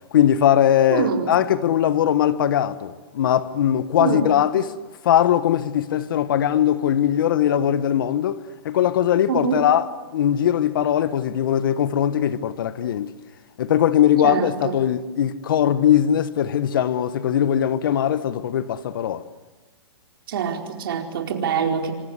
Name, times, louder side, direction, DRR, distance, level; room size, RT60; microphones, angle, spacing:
voice 1, 0.1-4.7 5.0-8.4 8.6-13.1 13.6-19.2, left 10 dB, 55° left, 1.4 m, -20 dB
voice 2, 0.9-1.4 4.0-4.3 9.3-9.6 14.2-14.7 20.3-21.9, right 6 dB, 55° right, 4.7 m, -24 dB
27.0 x 26.5 x 8.2 m
hypercardioid pair, 160°, 14 cm